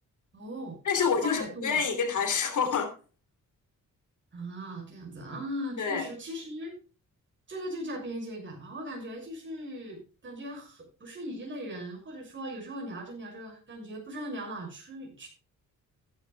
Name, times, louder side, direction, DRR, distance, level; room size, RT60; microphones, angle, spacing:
voice 1, 0.3-1.8 4.3-6.7 7.5-15.3, equal, 35° right, 6.2 m, -39 dB
voice 2, 0.8-2.9 5.8-6.1, left 6 dB, 70° left, 3.1 m, -27 dB
15.5 x 12.0 x 2.3 m
cardioid pair, 120°, 31 cm